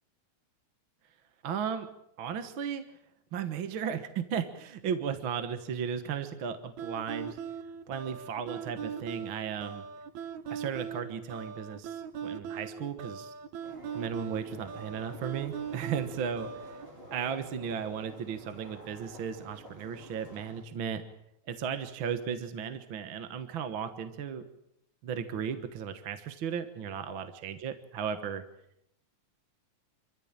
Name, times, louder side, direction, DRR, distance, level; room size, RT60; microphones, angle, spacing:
voice 1, 1.4-1.9 2.2-2.8 3.3-7.4 7.9-9.9 10.5-13.3 13.9-16.8 17.1-21.0 21.5-24.4 25.0-28.4, right 7 dB, 50° right, 9 dB, 1.8 m, -35 dB
sound 1, 6.8-16.9, right 7 dB, 75° right, 2.4 m, -40 dB
sound 2, 13.6-20.6, right 1 dB, 20° right, 4.6 m, -50 dB
26.5 x 15.0 x 8.8 m, 0.78 s
omnidirectional pair, 3.3 m